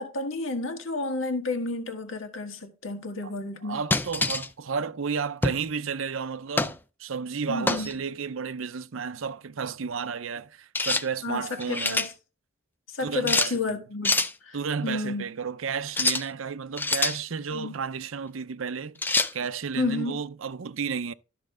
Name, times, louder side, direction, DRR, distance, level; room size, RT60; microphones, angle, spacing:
voice 1, 0.0-3.8 7.5-7.9 11.2-12.1 12.9-14.6 14.8-15.2 17.5-17.7 19.7-20.2, left 3 dB, 70° left, 1.7 m, -31 dB
voice 2, 3.6-12.1 13.0-13.8 14.5-19.0 19.3-21.1, right 6 dB, 75° right, 0.6 m, -32 dB
sound 1, 3.9-4.5 5.4-5.7 6.6-6.8 7.7-7.9 10.7-11.1 11.5-12.1 13.3-13.5 14.0-14.3 15.9-16.3 16.8-17.2 19.0-19.3, left 3 dB, 10° left, 0.4 m, -25 dB
12.5 x 6.5 x 3.8 m
head